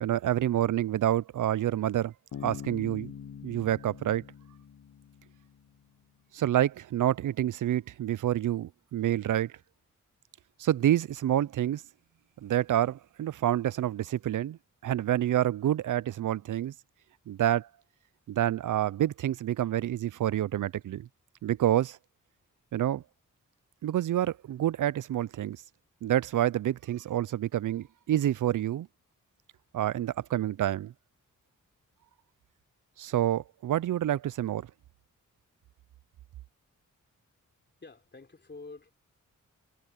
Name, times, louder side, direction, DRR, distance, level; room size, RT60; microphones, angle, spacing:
voice 1, 0.0-2.1 2.4-3.1 3.4-4.2 6.3-9.5 10.6-11.8 12.4-16.7 17.3-17.7 18.3-21.1 21.4-22.0 22.7-23.0 23.8-25.6 26.0-28.9 29.7-30.9 33.0-34.7, right 12 dB, 75° right, 0.5 m, -28 dB
Bass guitar, 2.3-5.8, left 8 dB, 70° left, 1.1 m, -44 dB
voice 2, 37.8-38.9, left 3 dB, 35° left, 3.7 m, -47 dB
wide cardioid pair, 100°, 32 cm